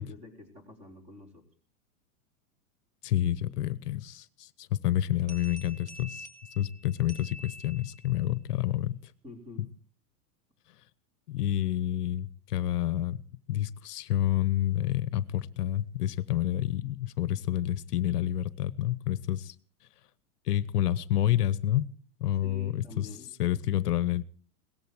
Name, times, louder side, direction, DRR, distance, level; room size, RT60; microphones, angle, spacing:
voice 1, 0.0-1.4 9.2-9.7 22.4-23.3, left 2 dB, 15° right, 3.9 m, -47 dB
voice 2, 3.0-6.3 6.6-9.1 11.3-13.2 13.5-19.5 20.4-21.9 22.2-23.1 23.4-24.2, left 12 dB, 80° left, 1.0 m, -29 dB
sound 1, 5.3-8.2, equal, 45° right, 3.2 m, -47 dB
18.0 x 14.0 x 4.8 m
supercardioid pair, 155°, 46 cm